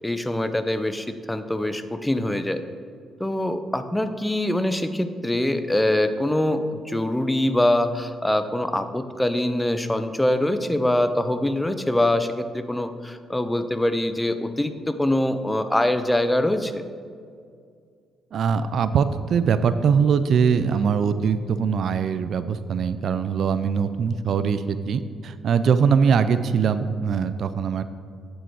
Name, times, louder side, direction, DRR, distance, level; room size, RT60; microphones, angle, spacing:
voice 1, 0.0-2.6 3.2-16.8, left 1 dB, 10° left, 10 dB, 0.5 m, -24 dB
voice 2, 18.3-27.8, right 6 dB, 60° right, 12 dB, 0.4 m, -22 dB
8.3 x 6.2 x 4.6 m, 2.2 s
cardioid pair, 90°, 0 cm